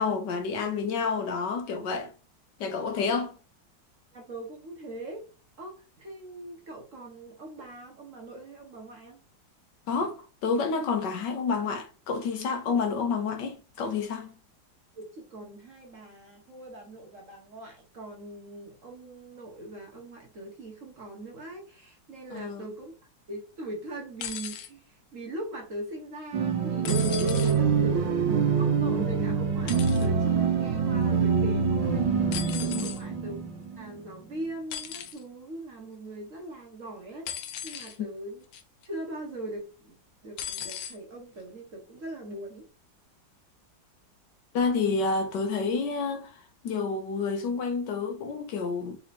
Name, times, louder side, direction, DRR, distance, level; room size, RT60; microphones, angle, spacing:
voice 1, 0.0-2.1 2.6-3.4 9.9-14.3 22.3-22.6 32.7-32.9 38.0-38.1 44.5-49.0, left 4 dB, 70° left, 1.3 m, -29 dB
voice 2, 4.1-5.2 5.6-9.2 14.9-22.9 23.3-33.4 33.8-38.4 38.8-39.9 40.2-42.7, right 1 dB, 45° right, 1.4 m, -41 dB
sound 1, 24.2-24.7 26.8-27.6 29.7-30.1 32.3-33.0 34.7-35.2 37.3-38.0 38.5-38.8 40.4-41.0 42.0-42.1, left 9 dB, 90° left, 1.5 m, -37 dB
sound 2, 26.3-33.9, right 6 dB, 75° right, 1.4 m, -25 dB
4.1 x 2.9 x 4.1 m
omnidirectional pair, 2.1 m